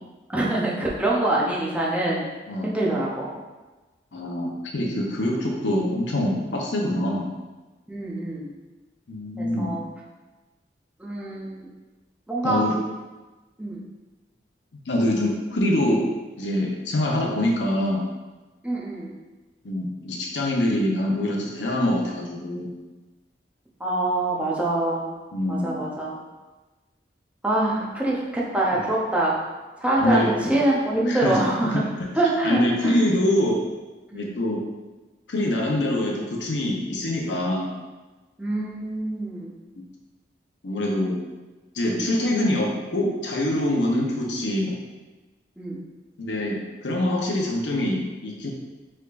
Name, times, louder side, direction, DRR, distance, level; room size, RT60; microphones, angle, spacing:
voice 1, 0.3-2.3 2.6-3.3 7.9-8.5 9.4-9.8 11.0-11.7 12.3-12.6 13.6-13.8 18.6-19.2 23.8-25.1 25.5-26.2 27.4-29.4 29.8-31.8 32.1-33.0 34.1-34.3 38.4-39.5 41.9-42.1 45.6-45.8, right 2 dB, 10° right, -5 dB, 0.7 m, -25 dB
voice 2, 4.1-7.3 9.1-9.7 12.4-12.7 14.9-16.0 16.4-18.0 19.6-22.7 25.3-25.7 28.7-28.8 30.0-30.3 31.1-31.4 31.7-32.1 32.4-33.6 34.1-34.6 35.3-37.7 40.6-41.2 41.7-44.7 46.2-48.5, left 1 dB, 85° left, -1 dB, 0.8 m, -24 dB
4.6 x 3.5 x 2.5 m, 1.2 s
head